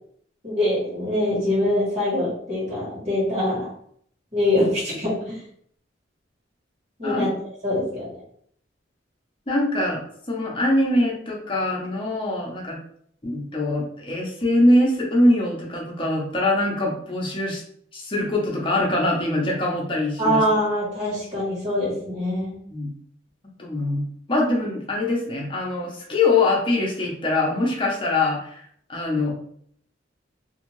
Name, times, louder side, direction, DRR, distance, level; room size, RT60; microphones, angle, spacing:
voice 1, 0.4-3.7 4.3-5.4 7.0-7.3 7.6-8.2 20.2-22.5, left 1 dB, 35° right, -8 dB, 1.4 m, -23 dB
voice 2, 9.5-12.8 13.2-17.6 17.9-20.4 22.7-22.9 23.6-29.3, left 2 dB, 25° left, -2 dB, 0.7 m, -23 dB
2.6 x 2.4 x 3.0 m, 0.65 s
head